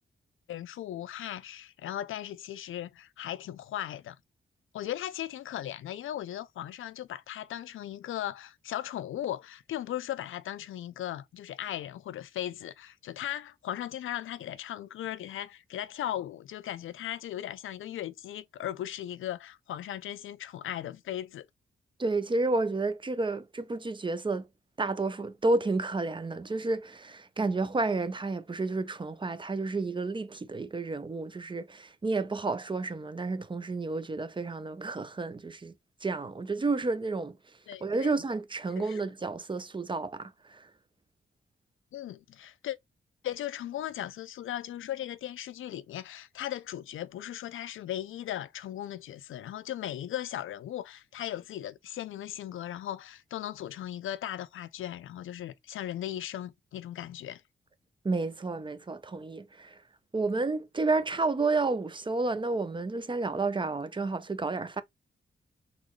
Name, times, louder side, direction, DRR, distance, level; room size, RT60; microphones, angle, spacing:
voice 1, 0.5-4.2 4.7-21.5 37.7-38.2 38.8-39.0 41.9-42.8 43.2-57.4, left 12 dB, 90° left, 0.4 m, -37 dB
voice 2, 22.0-24.5 24.8-35.7 36.0-37.4 37.8-40.7 58.0-59.8 60.1-64.8, right 3 dB, 25° right, 0.5 m, -31 dB
3.8 x 3.1 x 3.1 m
cardioid pair, 80°, 20 cm